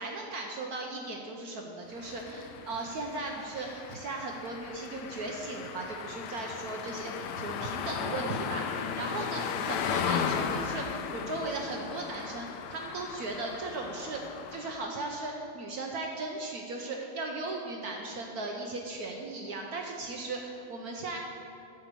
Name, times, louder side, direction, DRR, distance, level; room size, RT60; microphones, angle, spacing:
voice 1, 0.0-14.2 14.5-21.2, right 3 dB, 65° right, 1 dB, 1.2 m, -37 dB
sound 1, 2.0-14.9, left 7 dB, 80° left, 1.2 m, -36 dB
12.0 x 4.5 x 8.2 m, 2.7 s
omnidirectional pair, 1.9 m